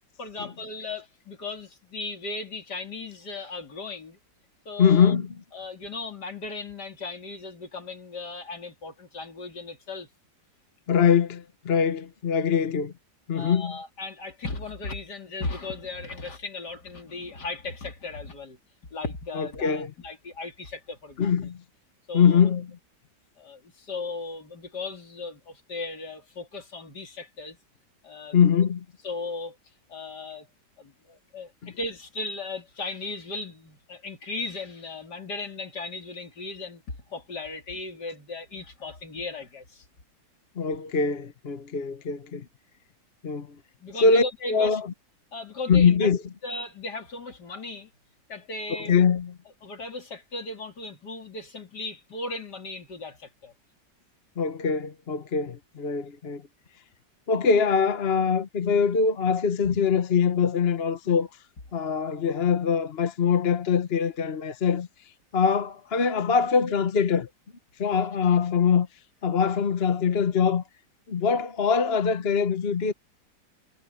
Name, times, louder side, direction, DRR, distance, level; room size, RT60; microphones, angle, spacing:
voice 1, 0.2-4.2 4.6-5.1 5.5-10.1 13.3-18.6 18.9-21.3 22.1-22.6 23.4-27.6 28.0-28.7 29.0-29.6 29.9-30.5 30.8-39.8 43.8-44.8 45.3-46.1 46.4-47.9 48.3-48.9 49.6-53.5 59.7-59.8, left 3 dB, 65° left, 3.5 m, -37 dB
voice 2, 4.8-5.4 10.9-12.9 13.3-13.7 19.3-19.9 21.2-21.6 22.1-22.7 28.3-28.8 31.6-31.7 40.6-42.4 43.2-43.6 44.0-44.2 44.5-44.9 45.7-46.2 48.8-49.3 54.4-56.4 57.3-61.3 61.7-64.9 65.3-67.3 67.8-68.9 69.2-70.6 71.1-72.9, left 6 dB, 40° left, 1.1 m, -23 dB
omnidirectional pair, 1.9 m